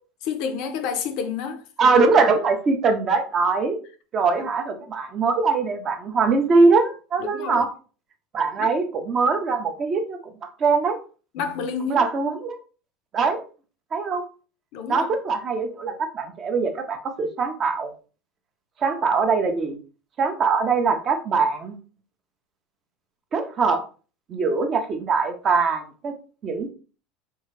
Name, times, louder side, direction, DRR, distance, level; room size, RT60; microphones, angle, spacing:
voice 1, 0.3-1.6 4.4-4.8 7.2-7.7 8.6-8.7 11.3-12.1 14.7-15.1, left 6 dB, 45° left, 0.5 m, -29 dB
voice 2, 1.8-3.8 4.1-7.7 8.3-11.0 11.9-12.6 13.1-13.4 13.9-14.2 14.9-17.9 18.8-19.8 20.2-21.7 23.3-23.8 24.3-26.1 26.4-26.7, right 4 dB, 20° right, 0.5 m, -22 dB
4.4 x 2.4 x 3.1 m
cardioid pair, 180°, 0 cm